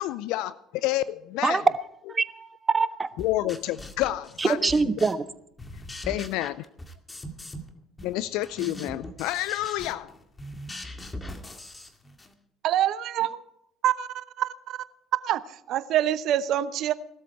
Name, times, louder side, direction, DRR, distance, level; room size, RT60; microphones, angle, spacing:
voice 1, 0.0-1.6 3.2-4.9 6.1-6.7 8.0-10.1, left 15 dB, 70° left, 0.5 m, -29 dB
voice 2, 2.1-3.1 4.4-5.2, right 4 dB, 25° right, 1.2 m, -24 dB
sound 1, 3.2-5.3 5.6-7.7 8.0-12.3, left 1 dB, 20° left, 2.2 m, -41 dB
voice 3, 12.6-13.4 13.8-14.8 15.2-15.4 15.7-16.9, right 11 dB, 60° right, 0.9 m, -26 dB
18.5 x 13.0 x 4.6 m
hypercardioid pair, 65°, 0 cm